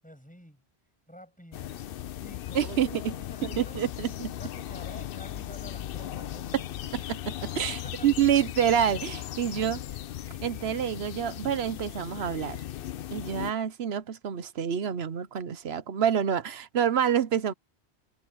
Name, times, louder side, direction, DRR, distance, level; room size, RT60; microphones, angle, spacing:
voice 1, 0.0-0.6 1.1-1.7 2.2-3.8 4.4-6.5 7.7-8.1, equal, 5° left, 7.8 m, -49 dB
sound 1, 1.5-13.5, left 11 dB, 65° left, 0.7 m, -37 dB
voice 2, 2.5-3.1 3.6-4.3 6.9-9.8 10.4-12.6 13.1-17.5, right 9 dB, 70° right, 1.1 m, -27 dB
omnidirectional pair, 1.1 m